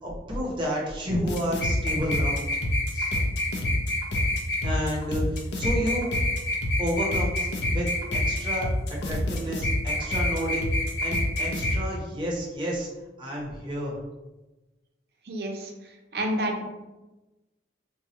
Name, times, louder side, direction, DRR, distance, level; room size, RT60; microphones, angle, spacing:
voice 1, 0.0-2.4 2.9-3.1 4.6-6.1 6.8-12.9 13.2-14.0, equal, 25° right, -3 dB, 0.7 m, -31 dB
sound 1, 1.2-11.8, left 1 dB, 85° left, 0.5 m, -27 dB
voice 2, 15.3-15.7 16.1-16.6, right 1 dB, 60° right, 1 dB, 0.5 m, -28 dB
4.0 x 2.3 x 2.8 m, 1.1 s
head